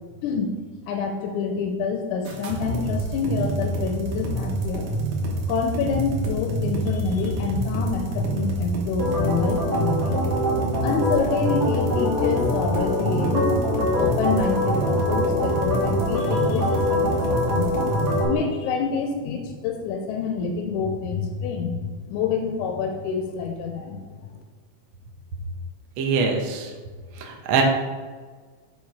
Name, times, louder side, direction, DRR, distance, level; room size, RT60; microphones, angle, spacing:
voice 1, 0.2-0.5 0.9-4.9 5.5-10.2 10.8-13.5 13.9-17.7 18.3-21.8 22.1-24.3, left 5 dB, 85° left, 3 dB, 2.0 m, -27 dB
sound 1, 2.2-18.2, right 2 dB, 85° right, 2.6 m, -27 dB
Organ, 9.0-18.3, left 1 dB, 35° right, 1.2 m, -24 dB
voice 2, 26.0-26.7 27.2-27.6, right 5 dB, 70° right, 1 dB, 1.2 m, -23 dB
8.9 x 3.7 x 4.6 m, 1.5 s
omnidirectional pair, 3.5 m